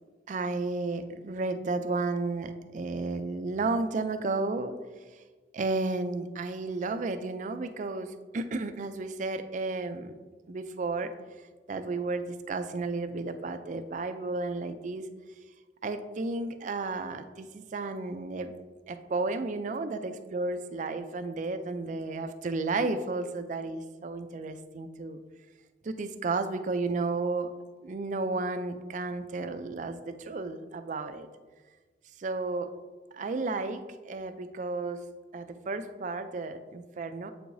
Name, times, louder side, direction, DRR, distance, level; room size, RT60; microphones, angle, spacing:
voice 1, 0.3-4.7 5.5-10.2 10.5-11.1 11.7-15.1 15.8-18.5 18.9-25.2 25.8-27.5 27.8-31.3 32.2-32.7 33.1-35.1 35.3-37.3, right 3 dB, 45° right, 9 dB, 0.4 m, -33 dB
7.8 x 4.7 x 2.6 m, 1.4 s
head